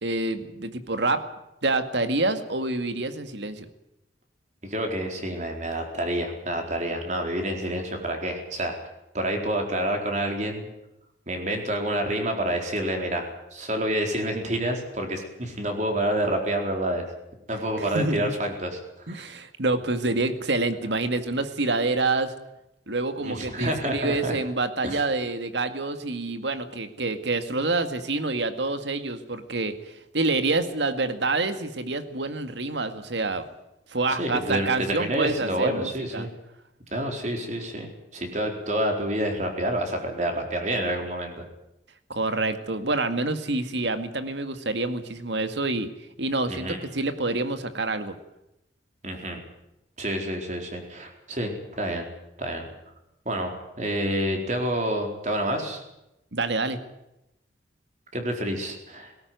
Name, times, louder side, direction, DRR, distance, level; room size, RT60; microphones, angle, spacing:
voice 1, 0.0-1.2 1.6-3.7 17.9-18.3 19.1-22.3 22.9-33.4 33.9-36.3 42.1-45.9 46.2-48.2 56.3-56.8, right 2 dB, 70° right, 9 dB, 2.1 m, -27 dB
voice 2, 4.6-8.7 9.1-10.7 11.3-17.0 17.5-19.2 23.2-24.4 24.8-25.0 34.2-36.3 36.9-41.5 46.5-46.8 49.0-49.4 50.0-52.1 52.4-52.7 53.2-55.8 58.1-59.1, right 1 dB, 40° right, 3 dB, 4.4 m, -28 dB
19.0 x 17.5 x 9.4 m, 0.88 s
head